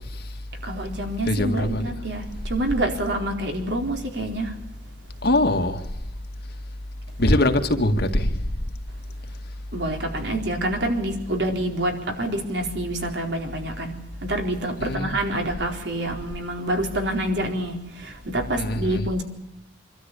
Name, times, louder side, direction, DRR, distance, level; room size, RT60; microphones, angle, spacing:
voice 1, 0.6-4.5 9.7-13.9 14.2-19.2, right 1 dB, 65° right, 4.3 m, -27 dB
voice 2, 1.2-1.9 5.2-5.9 7.2-8.4 14.8-15.2 18.6-19.1, left 1 dB, 60° left, 2.1 m, -22 dB
26.0 x 13.0 x 8.6 m
head